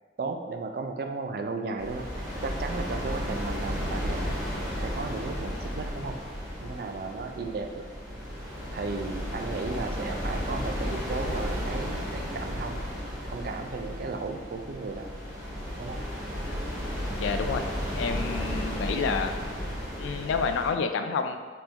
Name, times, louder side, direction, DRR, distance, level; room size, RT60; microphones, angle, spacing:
voice 1, 0.2-4.4 4.8-6.2 6.6-7.9 8.7-12.8 13.2-15.1 15.8-16.0 18.1-18.2, right 3 dB, 50° right, 5 dB, 0.3 m, -35 dB
sound 1, 1.8-20.7, equal, 20° right, 1.4 m, -33 dB
voice 2, 17.2-17.7 17.9-19.4 20.0-21.4, left 5 dB, 90° left, 7 dB, 0.3 m, -29 dB
4.5 x 3.2 x 2.8 m, 1.5 s
head